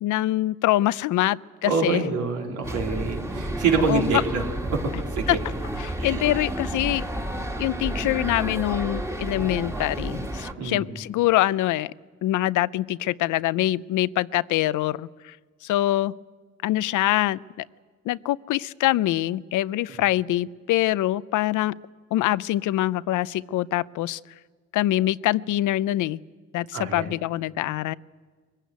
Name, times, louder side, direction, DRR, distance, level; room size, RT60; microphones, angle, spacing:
voice 1, 0.0-2.0 3.9-4.0 5.3-5.4 5.8-7.1 7.6-11.9 12.2-15.3 15.6-16.1 16.6-17.7 18.1-21.7 22.1-24.2 24.7-26.2 26.5-27.9, left 15 dB, 80° left, 19 dB, 0.6 m, -24 dB
voice 2, 1.6-4.4 4.7-5.4 6.0-6.5 10.6-11.0 26.7-27.1, right 4 dB, 80° right, 1 dB, 3.7 m, -26 dB
sound 1, 2.6-10.5, right 1 dB, 10° right, 2.0 m, -31 dB
22.5 x 15.5 x 9.4 m, 1.5 s
cardioid pair, 90°, 30 cm